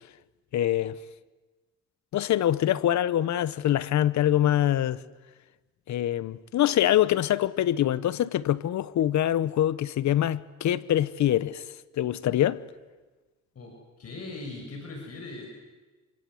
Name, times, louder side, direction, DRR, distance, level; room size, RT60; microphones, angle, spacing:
voice 1, 0.5-1.0 2.1-5.0 5.9-11.6 12.0-12.6, left 12 dB, 70° left, 1.1 m, -24 dB
voice 2, 13.6-15.5, left 2 dB, 55° left, 6.9 m, -40 dB
27.5 x 25.5 x 7.9 m
cardioid pair, 90°, 30 cm